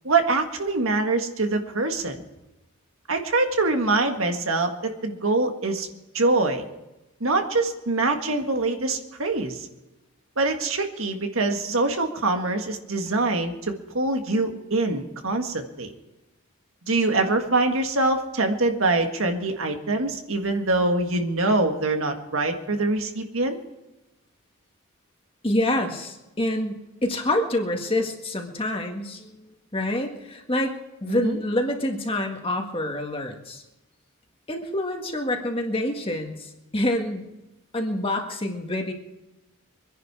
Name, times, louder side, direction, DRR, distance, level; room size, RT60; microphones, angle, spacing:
voice 1, 0.0-2.2 3.1-5.9 6.1-6.6 7.2-9.7 10.4-15.9 16.9-23.6 31.1-31.4, right 2 dB, 70° right, 5 dB, 1.7 m, -24 dB
voice 2, 25.4-30.7 31.0-33.6 34.5-37.3 37.7-38.9, left 1 dB, 25° left, 3 dB, 1.7 m, -27 dB
24.5 x 10.5 x 4.8 m, 1.0 s
head